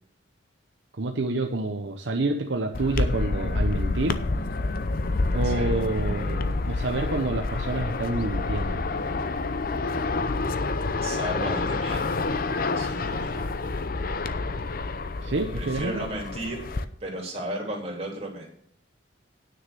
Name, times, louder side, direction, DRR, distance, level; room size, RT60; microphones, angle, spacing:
voice 1, 1.0-4.2 5.3-8.8 15.2-16.1, right 2 dB, 65° right, 4 dB, 0.8 m, -28 dB
sound 1, 2.7-16.8, left 3 dB, 45° left, 0.6 m, -28 dB
voice 2, 5.4-5.8 11.0-12.2 12.8-13.4 15.6-16.7 17.0-18.5, right 1 dB, 30° right, -1 dB, 3.1 m, -34 dB
9.6 x 6.5 x 6.8 m, 0.67 s
head